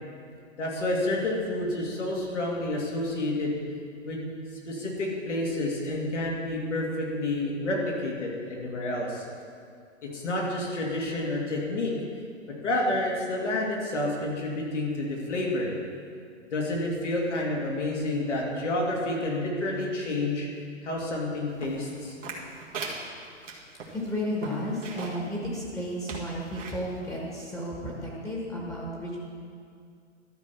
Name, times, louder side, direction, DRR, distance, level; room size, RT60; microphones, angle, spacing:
voice 1, 0.6-3.5 4.0-4.3 4.7-9.2 10.0-11.9 12.5-15.7 16.5-20.5 20.8-22.2, left 1 dB, 75° left, -3 dB, 2.7 m, -29 dB
sound 1, 21.6-25.3 25.7-25.8 26.0-26.8 27.4-27.5, right 4 dB, 85° right, 1.9 m, -39 dB
voice 2, 23.9-29.2, equal, 10° left, -4 dB, 1.4 m, -33 dB
12.5 x 4.5 x 7.0 m, 2.2 s
hypercardioid pair, 130°, 36 cm